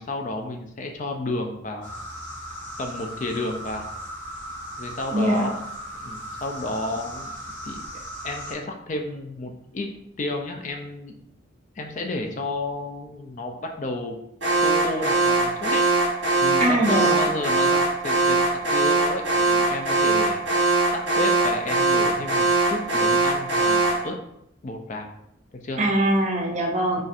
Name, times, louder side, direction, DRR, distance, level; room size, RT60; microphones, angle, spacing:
voice 1, 0.0-1.9 2.8-3.9 4.8-5.5 6.0-7.3 7.6-7.8 8.2-9.9 10.2-11.1 11.8-14.2 14.6-15.9 16.4-24.2 24.6-25.1 25.6-25.8 27.0-27.1, left 2 dB, 40° left, 3 dB, 0.4 m, -31 dB
sound 1, 1.8-8.5, equal, 70° left, 0.9 m, -37 dB
voice 2, 5.1-5.5 16.6-17.2 25.8-27.0, right 1 dB, 35° right, 0 dB, 0.5 m, -22 dB
Alarm, 14.4-24.1, right 2 dB, 60° right, 1.2 m, -21 dB
4.0 x 2.5 x 2.5 m, 0.79 s
head